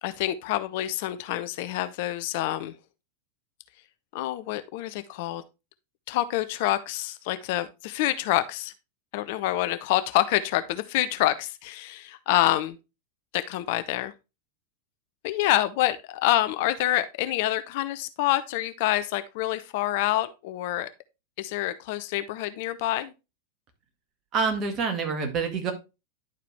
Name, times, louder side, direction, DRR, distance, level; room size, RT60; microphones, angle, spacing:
voice 1, 0.0-2.7 4.1-5.4 6.1-8.7 9.1-12.8 13.3-14.1 15.2-20.9 21.4-23.1, left 14 dB, 50° left, 0.6 m, -27 dB
voice 2, 24.3-25.7, right 5 dB, 30° right, 1.9 m, -27 dB
10.5 x 4.7 x 3.3 m
figure-of-eight pair, 90°, 0 cm